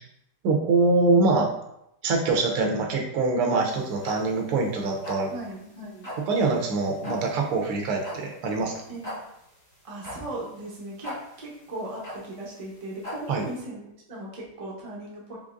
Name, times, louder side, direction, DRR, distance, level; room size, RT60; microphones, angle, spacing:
voice 1, 0.4-1.5 2.0-5.3 6.3-8.7 13.3-13.4, right 3 dB, 85° right, 1 dB, 1.7 m, -24 dB
voice 2, 3.4-3.9 5.3-6.1 8.9-9.1 9.8-13.8 14.1-15.4, right 1 dB, 55° right, -4 dB, 0.3 m, -38 dB
sound 1, 3.6-13.6, left 1 dB, 20° left, 1.4 m, -41 dB
5.0 x 3.4 x 2.5 m, 0.79 s
omnidirectional pair, 2.4 m